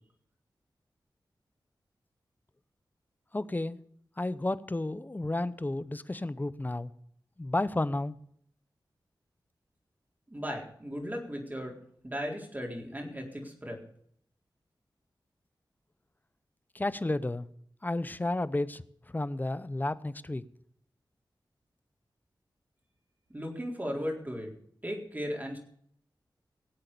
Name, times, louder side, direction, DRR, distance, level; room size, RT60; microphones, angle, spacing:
voice 1, 3.3-3.8 4.2-6.9 7.4-8.2 16.7-17.5 17.8-18.8 19.1-20.4, left 2 dB, 20° left, 16 dB, 0.8 m, -32 dB
voice 2, 10.3-11.7 12.0-13.8 23.3-24.5 24.8-25.6, equal, 20° right, 1 dB, 4.0 m, -36 dB
18.0 x 8.3 x 6.9 m, 0.65 s
wide cardioid pair, 85°, 8 cm